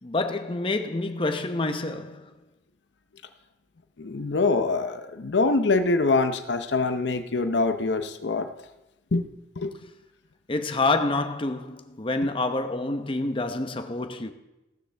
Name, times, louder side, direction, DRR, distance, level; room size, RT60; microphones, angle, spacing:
voice 1, 0.0-2.3 10.5-14.3, left 2 dB, 30° left, 0.8 m, -27 dB
voice 2, 4.0-8.5 9.1-9.3 9.6-9.7, left 3 dB, 85° left, 0.7 m, -24 dB
16.0 x 13.0 x 3.4 m
head